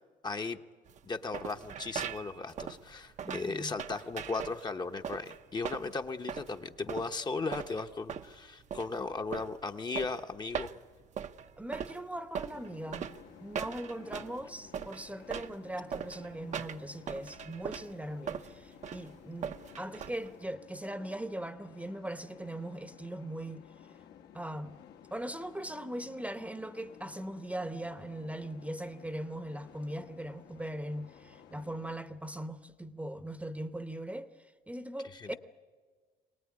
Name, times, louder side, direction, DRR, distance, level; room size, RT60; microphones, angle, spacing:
voice 1, 0.2-0.6 1.0-10.7 35.1-35.3, left 3 dB, 25° left, 0.9 m, -36 dB
sound 1, 0.9-20.5, right 8 dB, 45° right, 0.7 m, -41 dB
voice 2, 3.2-3.7 11.6-13.1 13.4-23.6 24.3-24.8 25.1-34.3 34.7-35.3, right 1 dB, 10° right, 0.9 m, -40 dB
sound 2, 12.5-32.0, left 9 dB, 75° left, 1.5 m, -55 dB
23.5 x 18.5 x 9.7 m
cardioid pair, 110°, 17 cm